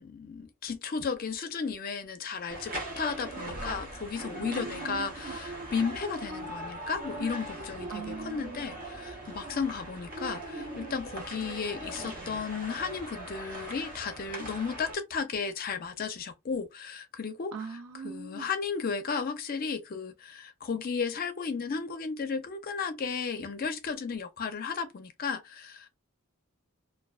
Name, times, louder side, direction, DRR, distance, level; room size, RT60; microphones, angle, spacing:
voice 1, 0.0-17.5 18.0-25.9, left 5 dB, 40° left, 0.4 m, -34 dB
sound 1, 2.5-14.9, right 1 dB, 40° right, 0.8 m, -40 dB
voice 2, 4.4-5.4 7.9-8.7 17.5-18.5, right 4 dB, 90° right, 0.7 m, -41 dB
2.3 x 2.3 x 2.3 m
head